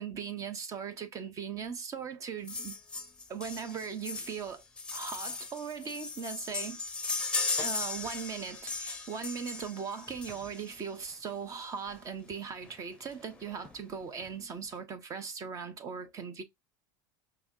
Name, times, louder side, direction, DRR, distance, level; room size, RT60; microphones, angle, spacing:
voice 1, 0.0-2.7 3.3-4.6 4.9-6.8 7.6-16.4, right 6 dB, 35° right, 1.0 m, -39 dB
sound 1, 2.5-10.8 11.9-12.0 12.3-12.4 12.6-12.8 13.1-13.7 14.2-14.3, left 4 dB, 10° left, 0.8 m, -37 dB
5.6 x 2.2 x 2.6 m
supercardioid pair, 115°, 10 cm